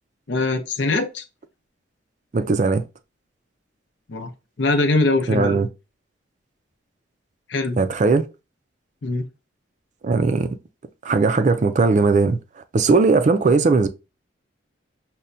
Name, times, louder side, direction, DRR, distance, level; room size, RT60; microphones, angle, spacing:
voice 1, 0.3-1.2 4.1-4.3 4.6-5.6 7.5-7.8 9.0-9.3, left 2 dB, 65° left, 0.6 m, -22 dB
voice 2, 2.3-2.8 5.3-5.7 7.8-8.3 10.0-10.6 11.1-12.4 12.7-13.9, right 4 dB, 40° right, 0.3 m, -18 dB
5.4 x 2.2 x 2.5 m
head